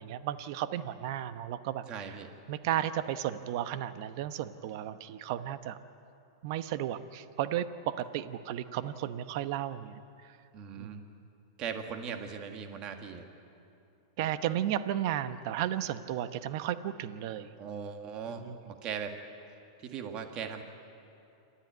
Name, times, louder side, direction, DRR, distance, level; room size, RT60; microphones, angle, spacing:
voice 1, 0.0-1.8 2.5-5.8 6.4-10.0 10.8-11.1 14.2-17.5 18.3-18.6, right 11 dB, 55° right, 12 dB, 0.9 m, -34 dB
voice 2, 1.9-2.3 10.5-11.0 11.6-13.3 17.6-19.2 19.5-20.6, right 7 dB, 40° right, 5 dB, 1.9 m, -39 dB
27.5 x 13.5 x 9.3 m, 2.7 s
hypercardioid pair, 125°, 2 cm